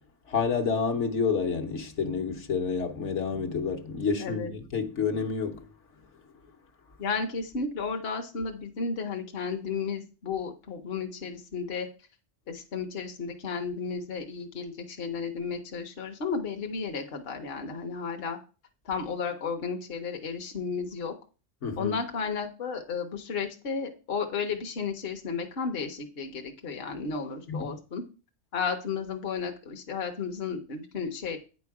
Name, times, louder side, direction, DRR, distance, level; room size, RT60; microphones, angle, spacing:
voice 1, 0.3-5.6 21.6-21.9 27.5-27.7, left 5 dB, 70° left, 1.3 m, -29 dB
voice 2, 4.2-4.5 7.0-11.9 12.5-18.4 18.8-21.1 21.8-28.0 28.5-31.4, left 5 dB, 55° left, 1.0 m, -33 dB
9.1 x 5.3 x 4.7 m
omnidirectional pair, 1.3 m